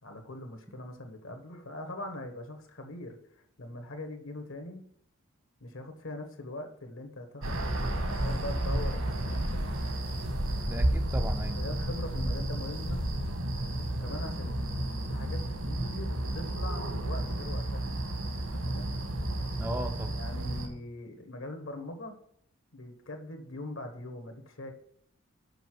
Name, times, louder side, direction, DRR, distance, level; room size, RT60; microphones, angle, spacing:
voice 1, 0.0-4.8 5.6-9.8 11.6-13.1 14.0-17.9 18.4-18.9 20.1-22.1 22.7-24.7, left 1 dB, 70° left, 1.4 m, -42 dB
sound 1, 7.4-20.7, right 1 dB, 75° right, 1.7 m, -32 dB
voice 2, 10.7-11.6 19.6-20.2, right 1 dB, 10° right, 0.4 m, -36 dB
6.8 x 5.4 x 6.2 m
head